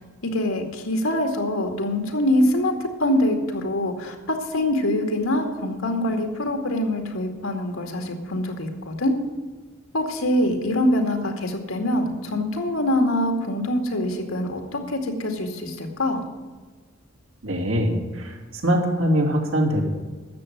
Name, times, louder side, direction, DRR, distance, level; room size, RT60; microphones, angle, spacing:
voice 1, 0.2-9.1 9.9-16.2, left 1 dB, 90° left, 5 dB, 2.3 m, -24 dB
voice 2, 17.4-19.8, equal, 80° right, 0 dB, 3.2 m, -23 dB
13.0 x 7.7 x 9.3 m, 1.4 s
head